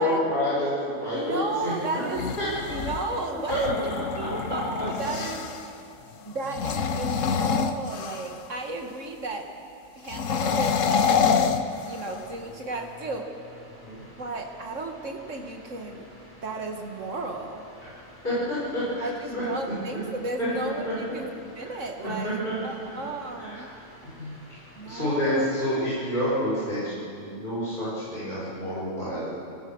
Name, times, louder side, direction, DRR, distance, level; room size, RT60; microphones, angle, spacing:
voice 1, 0.0-2.0 2.4-2.8 3.5-3.6 4.1-4.3 13.8-14.0 18.2-19.1 19.3-19.4 20.4-20.5 20.8-21.2 21.6-21.7 22.0-22.5 23.3-23.7 24.1-24.6 24.8-29.3, left 1 dB, 40° left, -10 dB, 6.8 m, -28 dB
voice 2, 1.1-2.3 2.7-3.9 4.2-5.4 6.2-9.5 10.0-11.3 11.8-13.3 14.2-16.1 16.4-17.6 19.0-23.7 24.8-25.5, right 2 dB, 70° right, 3 dB, 2.3 m, -34 dB
sound 1, 1.9-5.7 6.4-8.5 10.0-12.3, left 6 dB, 75° left, 1.3 m, -27 dB
sound 2, 11.2-26.0, equal, 10° left, 7.4 m, -51 dB
25.5 x 19.0 x 6.3 m, 2.6 s
omnidirectional pair, 1.4 m